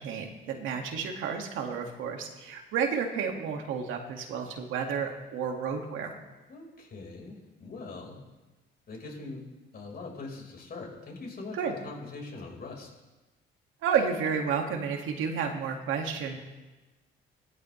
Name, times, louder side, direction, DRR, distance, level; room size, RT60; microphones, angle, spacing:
voice 1, 0.0-6.2 11.5-11.7 13.8-16.4, right 6 dB, 90° right, 2 dB, 2.1 m, -31 dB
voice 2, 6.5-8.2 8.9-9.4 9.7-12.9, left 3 dB, 50° left, 0 dB, 4.8 m, -42 dB
19.5 x 13.0 x 3.3 m, 1.1 s
cardioid pair, 90°, 20 cm